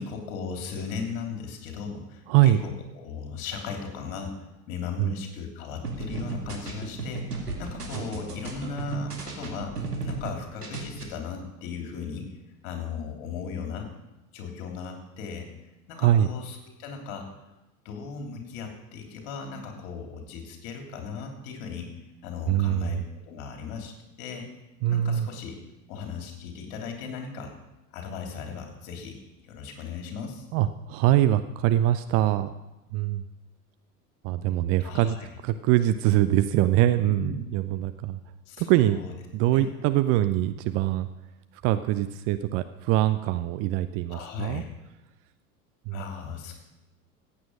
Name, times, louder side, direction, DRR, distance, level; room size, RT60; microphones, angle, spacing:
voice 1, 0.0-4.4 4.7-9.7 10.0-12.3 12.6-13.9 14.3-15.5 15.9-17.3 17.8-21.9 22.2-23.0 23.3-23.9 24.2-24.5 24.9-25.5 25.9-27.5 27.9-29.2 29.4-30.4 34.8-35.3 37.1-37.4 38.5-39.1 39.5-39.8 44.1-44.6 45.9-46.5, left 5 dB, 50° left, 3 dB, 3.2 m, -37 dB
voice 2, 2.3-2.6 5.0-5.1 16.0-16.3 22.5-23.0 24.8-25.3 30.5-32.5 32.9-33.2 34.2-35.2 35.4-38.2 38.6-39.0 39.3-41.1 41.6-44.6 45.9-46.0, right 13 dB, 30° right, 11 dB, 0.5 m, -23 dB
sound 1, 5.8-10.3 10.6-11.0, right 3 dB, 85° right, 2.3 m, -34 dB
15.0 x 8.7 x 6.3 m, 0.98 s
figure-of-eight pair, 80°, 45 cm